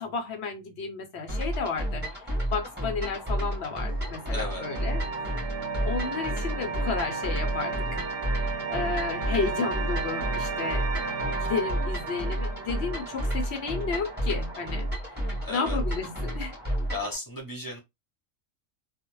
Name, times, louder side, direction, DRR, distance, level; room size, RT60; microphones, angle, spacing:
voice 1, 0.0-5.0 5.9-8.0 8.3-10.9 11.4-15.2 15.5-16.5, left 5 dB, 60° left, 0.8 m, -32 dB
sound 1, 1.3-17.2, equal, 10° right, 1.0 m, -31 dB
sound 2, 3.9-14.9, right 4 dB, 60° right, 0.7 m, -34 dB
voice 2, 4.3-4.6 9.4-9.5 15.4-15.8 16.9-17.8, left 1 dB, 20° left, 0.7 m, -35 dB
2.4 x 2.1 x 3.0 m
omnidirectional pair, 1.4 m